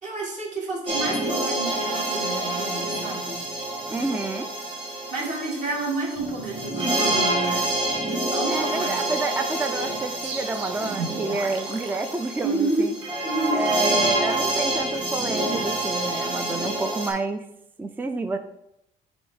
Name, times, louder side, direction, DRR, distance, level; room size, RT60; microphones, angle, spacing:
voice 1, 0.0-3.4 5.1-7.7 8.3-9.0 12.4-12.9 13.2-13.6, right 2 dB, 45° right, -3 dB, 2.0 m, -29 dB
sound 1, 0.9-17.1, right 1 dB, 30° right, 2.1 m, -27 dB
voice 2, 3.9-4.5 8.5-12.9 13.5-17.5 17.8-18.4, right 3 dB, 10° right, 8 dB, 0.4 m, -29 dB
sound 2, 10.2-13.0, right 5 dB, 80° right, 0.8 m, -36 dB
6.0 x 3.2 x 4.8 m, 0.81 s
cardioid pair, 110°, 17 cm